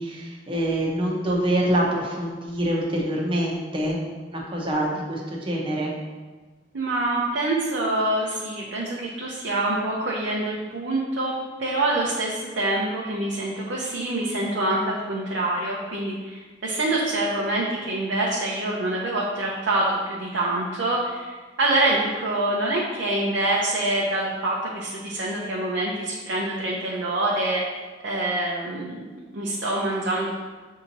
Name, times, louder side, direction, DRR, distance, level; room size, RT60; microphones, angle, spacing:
voice 1, 0.0-4.0 4.3-5.9, right 1 dB, 30° right, -2 dB, 0.8 m, -25 dB
voice 2, 6.7-11.3 11.6-29.0 29.3-30.3, right 2 dB, 85° right, -4 dB, 0.6 m, -26 dB
6.9 x 2.8 x 2.7 m, 1.4 s
head